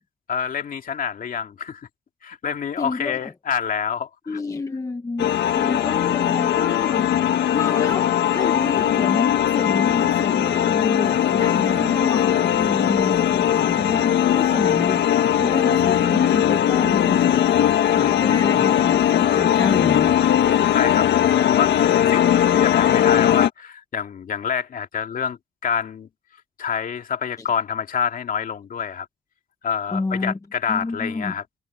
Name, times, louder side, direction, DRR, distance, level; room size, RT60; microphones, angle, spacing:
voice 1, 0.3-1.8 2.2-4.4 20.7-21.1 21.4-26.1 26.6-29.1 29.6-31.4, left 7 dB, 50° left, 2.4 m, -27 dB
voice 2, 2.8-3.3 4.3-7.1 7.5-17.5 17.9-20.2 29.9-30.4 30.7-31.3, left 3 dB, 20° left, 1.1 m, -29 dB
sound 1, 5.2-23.5, left 10 dB, 75° left, 1.6 m, -19 dB
cardioid pair, 120°, 18 cm